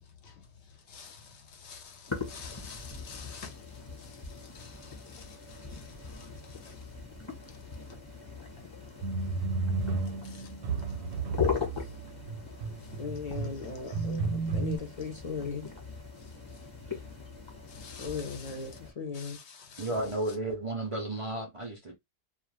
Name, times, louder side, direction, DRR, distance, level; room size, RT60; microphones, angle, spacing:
voice 1, 0.9-3.6 4.0-4.2 4.5-6.3 6.6-6.7 10.3-10.4 17.7-18.4 19.1-19.9, left 6 dB, 65° left, 0.9 m, -48 dB
sound 1, 2.1-18.9, left 5 dB, 25° left, 1.0 m, -40 dB
sound 2, 9.0-14.8, right 3 dB, 85° right, 1.0 m, -33 dB
voice 2, 13.0-15.7 18.0-19.4, left 5 dB, 45° left, 0.5 m, -37 dB
voice 3, 19.8-22.0, right 2 dB, 50° right, 0.3 m, -33 dB
2.3 x 2.3 x 3.1 m
omnidirectional pair, 1.3 m